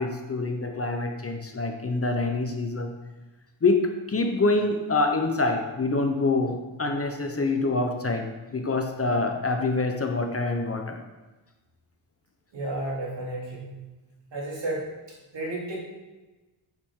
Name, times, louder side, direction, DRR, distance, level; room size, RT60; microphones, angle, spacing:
voice 1, 0.0-2.9 3.6-11.0, left 3 dB, 30° left, 4 dB, 0.7 m, -26 dB
voice 2, 12.5-13.8 14.3-14.8 15.3-15.8, right 2 dB, 60° right, -5 dB, 3.1 m, -32 dB
8.5 x 7.3 x 3.7 m, 1.2 s
wide cardioid pair, 135°, 47 cm